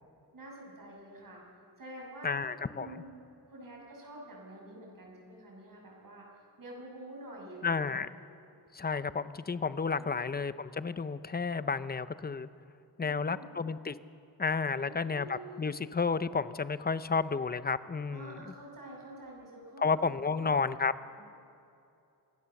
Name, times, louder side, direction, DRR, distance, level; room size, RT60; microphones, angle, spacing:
voice 1, 0.3-1.4 1.8-2.4 2.8-3.1 3.5-6.3 6.6-8.0 9.9-10.3 13.0-13.5 14.7-15.8 18.1-20.5 21.1-21.2, right 1 dB, 60° right, -2 dB, 7.1 m, -48 dB
voice 2, 2.2-2.9 7.6-8.1 8.7-12.5 13.0-14.0 14.4-18.4 19.8-20.9, left 5 dB, 25° left, 13 dB, 0.6 m, -31 dB
25.5 x 16.5 x 7.1 m, 2.6 s
wide cardioid pair, 120°, 39 cm